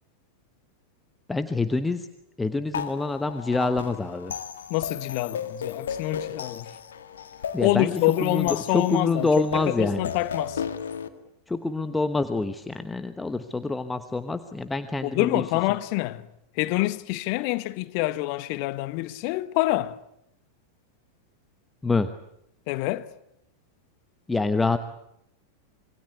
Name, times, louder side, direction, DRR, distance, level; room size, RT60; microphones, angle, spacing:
voice 1, 1.3-2.1 2.4-4.3 7.5-7.9 8.2-10.1 11.5-15.4 21.8-22.1 24.3-24.8, left 3 dB, 10° left, 1.1 m, -26 dB
sound 1, 2.7-11.1, left 7 dB, 65° left, 2.0 m, -35 dB
voice 2, 4.7-6.7 7.6-9.3 9.5-10.6 15.0-16.2 16.6-20.0 22.7-23.1, left 18 dB, 45° left, 1.2 m, -26 dB
26.5 x 23.0 x 8.2 m
figure-of-eight pair, 90°, 0 cm